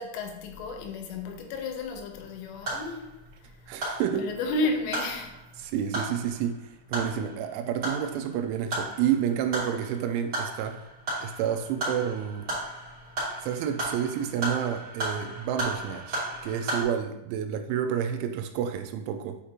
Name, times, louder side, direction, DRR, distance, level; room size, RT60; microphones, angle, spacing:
voice 1, 0.0-3.0 4.2-5.3, left 2 dB, 90° left, 3.4 m, -32 dB
sound 1, 2.1-16.8, right 1 dB, 25° right, 2.3 m, -36 dB
voice 2, 3.7-4.3 5.6-10.8 11.2-12.5 13.4-19.4, right 9 dB, 85° right, 2.9 m, -30 dB
8.7 x 5.0 x 2.9 m
omnidirectional pair, 5.6 m